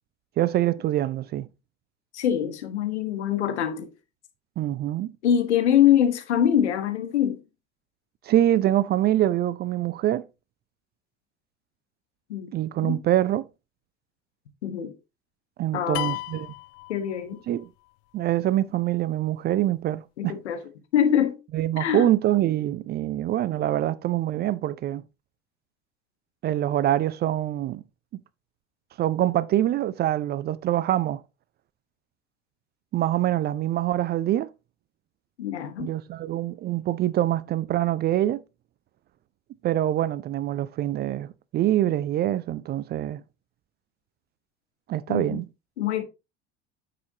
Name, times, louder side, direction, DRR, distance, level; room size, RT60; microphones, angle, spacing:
voice 1, 0.4-1.5 4.6-5.1 8.2-10.2 12.5-13.4 15.6-16.5 17.5-17.7 18.1-20.4 21.5-25.0 26.4-27.8 29.0-31.2 32.9-34.5 35.8-38.4 39.6-43.2 44.9-45.5, right 13 dB, 30° right, 0.4 m, -25 dB
voice 2, 2.1-3.9 5.2-7.4 12.3-12.5 12.8-13.0 14.6-14.9 15.7-16.1 16.9-17.4 20.2-20.6 20.9-21.4 21.8-22.1 35.4-35.9 45.1-45.4 45.8-46.0, left 10 dB, 70° left, 1.3 m, -24 dB
sound 1, 15.9-17.6, left 22 dB, 45° left, 0.4 m, -34 dB
9.4 x 6.7 x 2.8 m
figure-of-eight pair, 65°, 35 cm